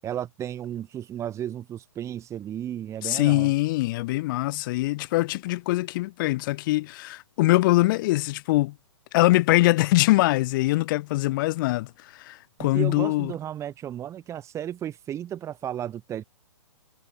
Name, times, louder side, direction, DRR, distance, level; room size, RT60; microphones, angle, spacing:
voice 1, 0.0-3.5 12.6-16.2, right 10 dB, 15° right, 7.7 m, -34 dB
voice 2, 3.0-8.7 9.1-11.9 12.2-13.3, left 19 dB, 40° left, 7.2 m, -23 dB
hypercardioid pair, 150°, 17 cm